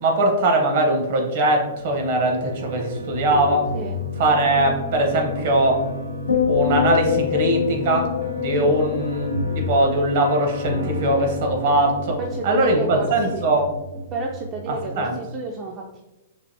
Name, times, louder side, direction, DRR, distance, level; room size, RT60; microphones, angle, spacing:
voice 1, 0.0-3.7 4.2-5.9 6.5-8.1 8.4-12.2 12.4-13.7 14.7-15.2, right 1 dB, 55° right, 2 dB, 0.7 m, -21 dB
sound 1, 1.6-15.0, left 2 dB, 90° right, 0.7 m, -31 dB
sound 2, 6.3-10.7 11.0-11.4, left 9 dB, 85° left, 0.5 m, -26 dB
voice 2, 12.2-13.5 14.1-16.0, right 2 dB, 30° right, -1 dB, 0.3 m, -31 dB
3.3 x 2.5 x 2.6 m, 1.0 s
hypercardioid pair, 125°, 0 cm